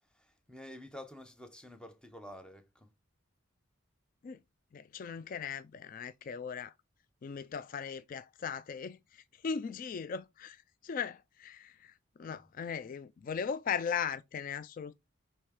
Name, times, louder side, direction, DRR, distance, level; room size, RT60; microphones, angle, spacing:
voice 1, 0.0-2.9 12.2-12.4, left 1 dB, 5° left, 0.7 m, -50 dB
voice 2, 4.7-6.7 7.2-14.9, left 6 dB, 40° left, 0.3 m, -38 dB
6.0 x 3.3 x 4.8 m
head